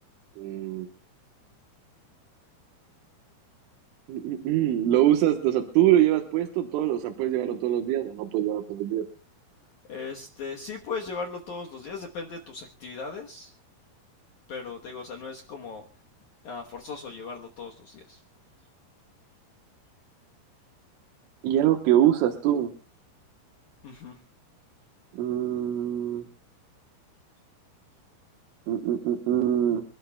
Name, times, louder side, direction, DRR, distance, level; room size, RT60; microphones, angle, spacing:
voice 1, 0.4-0.9 4.1-9.1 21.4-22.7 25.1-26.3 28.7-29.8, right 12 dB, 90° right, 4 dB, 3.7 m, -24 dB
voice 2, 9.9-13.5 14.5-15.8 16.4-18.2 23.8-24.2, left 4 dB, 80° left, 1 dB, 1.7 m, -38 dB
27.5 x 12.5 x 2.3 m, 0.34 s
omnidirectional pair, 5.4 m